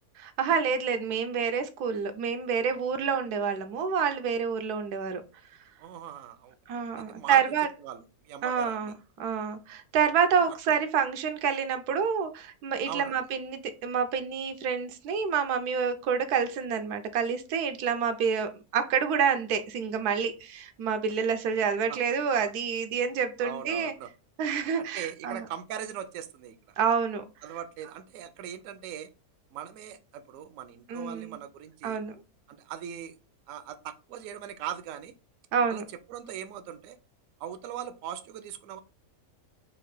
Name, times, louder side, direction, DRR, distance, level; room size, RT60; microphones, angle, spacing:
voice 1, 0.2-5.2 6.7-7.7 8.4-23.9 24.4-25.5 26.8-27.2 30.9-31.4 31.8-32.1 35.5-35.9, right 6 dB, 85° right, 1.2 m, -28 dB
voice 2, 5.8-6.5 7.0-7.4 7.8-8.9 12.9-13.2 21.9-22.0 23.4-24.1 24.8-26.6 27.4-29.1 29.5-32.0 32.5-33.1 33.5-35.1 35.7-35.8 36.1-37.0 37.4-38.8, right 10 dB, 70° right, 0.9 m, -40 dB
4.2 x 2.4 x 4.8 m
omnidirectional pair, 1.6 m